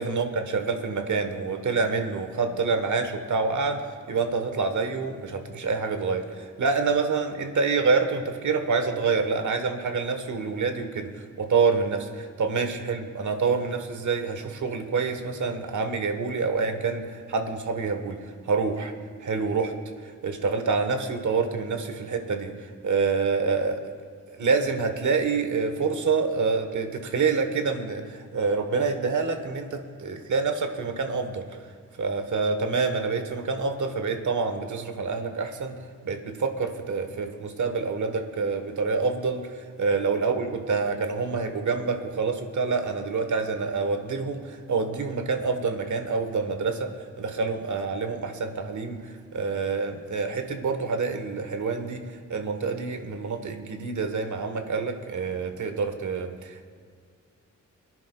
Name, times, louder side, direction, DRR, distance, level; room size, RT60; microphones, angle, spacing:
voice 1, 0.0-18.9 19.2-19.7 20.0-22.6 22.8-23.8 24.3-31.5 32.0-35.8 36.0-46.9 47.2-52.0 52.3-56.7, right 4 dB, 70° right, 7 dB, 1.2 m, -27 dB
23.0 x 10.5 x 2.3 m, 2.1 s
cardioid pair, 65°, 31 cm